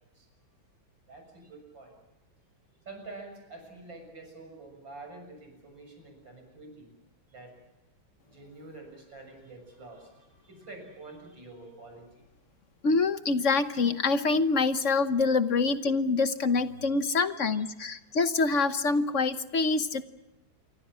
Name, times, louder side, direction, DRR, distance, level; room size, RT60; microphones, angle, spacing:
voice 1, 1.1-1.9 2.9-6.9 7.3-7.5 8.3-12.1 16.9-17.6, right 3 dB, 70° right, 4 dB, 7.7 m, -47 dB
voice 2, 12.8-20.0, left 4 dB, 45° left, 10 dB, 1.1 m, -26 dB
28.0 x 24.5 x 6.3 m, 0.97 s
omnidirectional pair, 2.1 m